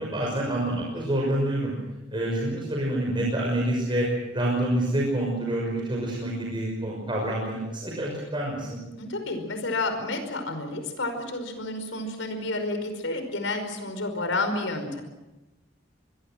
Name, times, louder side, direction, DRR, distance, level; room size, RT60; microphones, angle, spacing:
voice 1, 0.0-1.7 2.1-8.8, right 1 dB, 25° right, -2 dB, 5.9 m, -27 dB
voice 2, 9.0-15.0, left 2 dB, 80° left, 7 dB, 5.2 m, -30 dB
25.5 x 21.5 x 6.4 m, 1.0 s
head